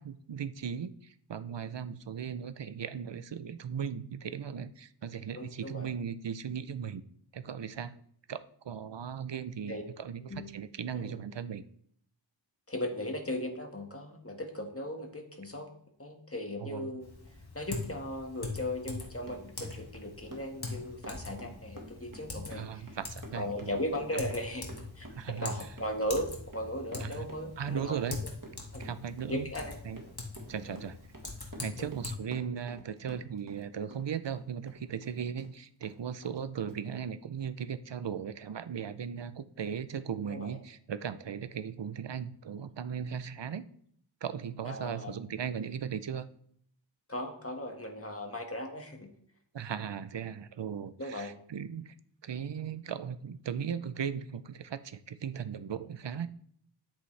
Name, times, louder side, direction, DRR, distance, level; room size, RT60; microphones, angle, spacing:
voice 1, 0.0-7.0 7.3-8.0 8.3-11.7 16.6-16.9 22.5-23.8 25.1-25.5 27.0-27.3 27.6-28.2 28.8-29.5 29.8-30.0 30.5-31.0 31.6-43.6 44.2-46.3 49.5-51.9 52.2-56.3, right 7 dB, 65° right, 13 dB, 0.6 m, -37 dB
voice 2, 5.3-5.9 9.7-9.8 10.2-10.5 10.9-11.2 12.7-15.7 16.0-17.1 17.5-22.9 23.3-24.7 24.9-25.1 25.4-28.0 28.7-28.8 29.3-29.7 30.7-30.8 31.8-31.9 40.3-40.5 44.6-45.2 47.1-49.1 51.0-51.3, left 1 dB, 30° left, 3 dB, 1.7 m, -37 dB
Typing, 17.0-32.1, left 3 dB, 55° left, 2.0 m, -43 dB
Run, 18.8-33.7 33.9-35.5 35.8-35.9 36.2-36.4 36.7-36.8, right 1 dB, 45° right, 1.7 m, -49 dB
10.0 x 8.1 x 3.3 m, 0.64 s
wide cardioid pair, 45°, 46 cm